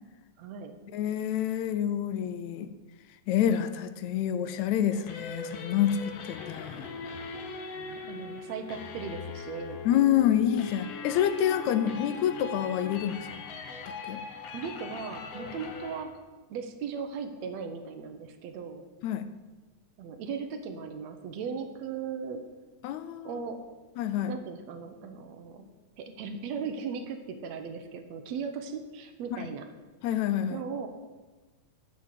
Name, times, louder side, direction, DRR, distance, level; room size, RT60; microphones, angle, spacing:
voice 1, 0.4-0.8 7.8-9.8 14.5-16.1 16.5-18.8 20.0-22.4 23.2-23.6 24.3-25.7 26.0-29.7 30.5-30.9, right 6 dB, 70° right, 7 dB, 2.0 m, -37 dB
voice 2, 0.9-2.7 3.3-6.8 9.9-13.3 14.0-14.2 19.0-19.3 22.8-23.4 24.0-24.3 29.3-29.4 30.0-30.6, left 10 dB, 80° left, 11 dB, 1.9 m, -27 dB
sound 1, 4.9-16.0, left 4 dB, 65° left, 2.0 m, -40 dB
9.2 x 6.8 x 8.4 m, 1.2 s
omnidirectional pair, 3.4 m